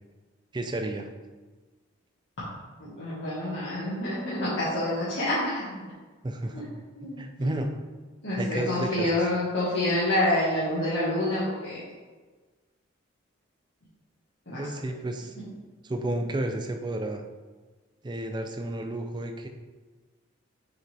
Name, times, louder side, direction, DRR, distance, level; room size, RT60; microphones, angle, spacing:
voice 1, 0.5-1.1 6.2-6.7 7.0-7.7 8.4-9.3 14.6-15.3 15.8-17.2 18.0-19.5, right 1 dB, 20° right, 5 dB, 0.4 m, -31 dB
voice 2, 2.8-5.7 6.5-6.6 7.0-7.5 8.2-11.8 14.5-14.6, left 1 dB, 65° left, -11 dB, 1.7 m, -27 dB
6.3 x 4.9 x 3.4 m, 1.3 s
head